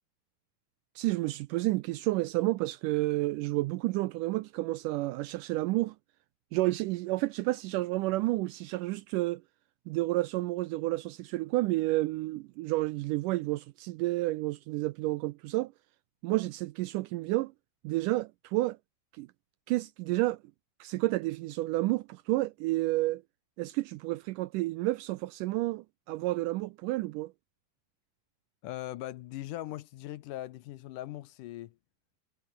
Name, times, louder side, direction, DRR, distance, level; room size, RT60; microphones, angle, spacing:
voice 1, 1.0-6.0 6.5-9.4 9.9-15.7 16.2-17.5 17.8-18.8 19.1-19.3 19.7-20.4 20.8-23.2 23.6-27.3, right 19 dB, 80° right, 1.9 m, -30 dB
voice 2, 28.6-31.8, left 14 dB, 70° left, 2.2 m, -40 dB
omnidirectional pair, 4.1 m